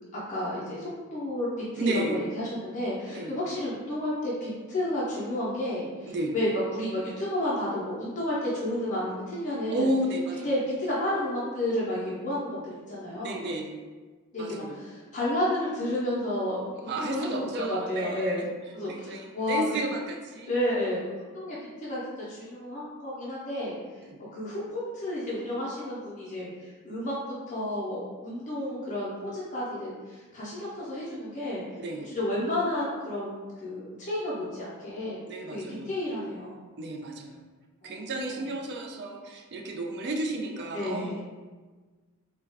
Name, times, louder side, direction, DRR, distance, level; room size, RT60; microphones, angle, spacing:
voice 1, 0.1-1.5 1.7-9.9 10.4-13.4 14.3-18.5 18.7-19.8 20.5-22.0 22.3-23.7 24.3-27.1 27.5-31.6 32.0-35.2 35.5-36.7 37.8-38.0 38.2-38.3 40.7-41.2, left 1 dB, 35° left, -8 dB, 0.5 m, -31 dB
voice 2, 1.8-2.2 3.1-3.4 6.1-6.4 9.7-10.5 13.1-13.8 14.4-14.8 16.9-18.5 18.9-20.5 24.0-24.2 31.8-32.1 35.3-35.9 36.8-37.4 37.8-41.2, right 1 dB, 50° right, 2 dB, 0.3 m, -32 dB
2.3 x 2.1 x 3.2 m, 1.4 s
head